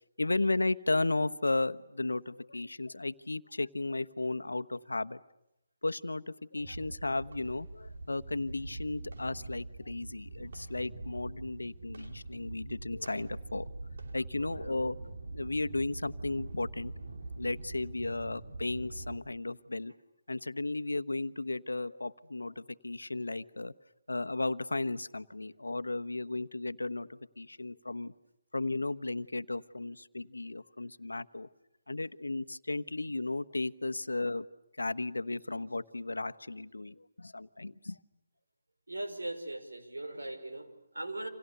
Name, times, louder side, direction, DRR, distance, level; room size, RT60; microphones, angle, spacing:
voice 1, 0.2-5.2 5.8-13.7 14.1-15.0 15.3-16.9 17.4-19.9 20.3-23.7 24.1-28.1 28.5-31.5 31.9-34.5 34.8-38.0, left 2 dB, 90° left, 12 dB, 1.1 m, -34 dB
sound 1, 6.6-19.2, right 2 dB, 65° right, 2.9 m, -44 dB
voice 2, 14.4-14.8 38.9-41.3, right 1 dB, 85° right, 6 dB, 5.2 m, -40 dB
29.5 x 27.5 x 6.8 m, 0.83 s
figure-of-eight pair, 150°, 0 cm